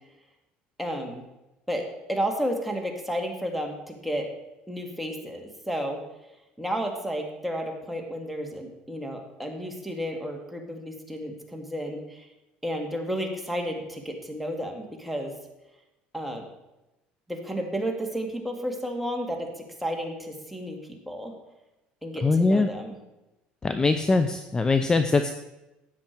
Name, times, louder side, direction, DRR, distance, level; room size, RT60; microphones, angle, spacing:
voice 1, 0.8-1.2 1.7-4.3 4.7-6.0 6.6-12.3 12.6-15.3 16.1-16.5 17.3-21.4 22.0-23.0, equal, ahead, 1 dB, 2.1 m, -32 dB
voice 2, 22.2-22.7 23.6-25.3, left 3 dB, 20° left, 9 dB, 0.6 m, -22 dB
13.5 x 8.8 x 4.6 m, 0.98 s
cardioid pair, 110°, 3 cm